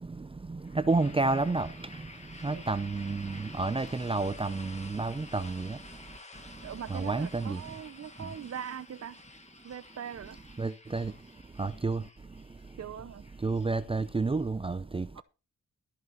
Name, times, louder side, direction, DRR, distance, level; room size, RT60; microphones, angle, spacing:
voice 1, 0.0-1.7 2.4-5.8 6.9-7.6 10.6-11.1 11.6-12.0 13.4-15.2, right 3 dB, 20° right, 0.5 m, -30 dB
sound 1, 0.6-14.4, left 2 dB, 25° left, 1.8 m, -51 dB
voice 2, 6.6-9.2 9.6-10.4 12.8-13.3 15.1-15.2, right 8 dB, 60° right, 0.9 m, -41 dB
13.0 x 6.0 x 5.6 m
wide cardioid pair, 100°, 29 cm